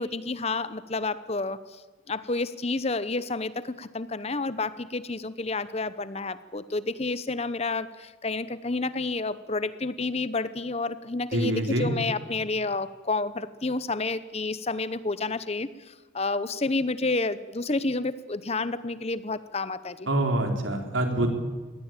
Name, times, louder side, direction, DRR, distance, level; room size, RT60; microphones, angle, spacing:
voice 1, 0.0-1.6 2.1-20.1, left 3 dB, 30° left, 15 dB, 0.8 m, -30 dB
voice 2, 11.3-11.9 20.1-21.3, right 1 dB, 75° right, 4 dB, 4.0 m, -25 dB
23.0 x 17.5 x 9.0 m, 1.4 s
head